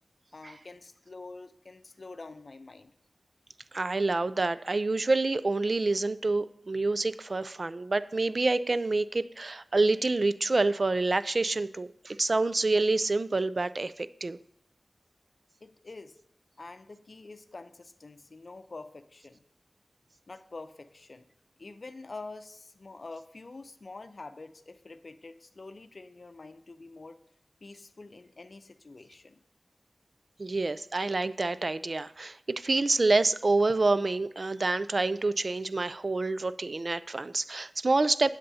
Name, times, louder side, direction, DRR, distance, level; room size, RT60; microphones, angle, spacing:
voice 1, 0.3-2.9 15.6-16.2 16.6-19.4 20.3-21.3 21.6-27.2 27.6-29.4, left 3 dB, 60° left, 10 dB, 0.6 m, -46 dB
voice 2, 3.7-14.4 30.4-38.3, right 3 dB, 55° right, 15 dB, 0.4 m, -27 dB
13.0 x 9.0 x 2.8 m, 0.73 s
wide cardioid pair, 55°, 0 cm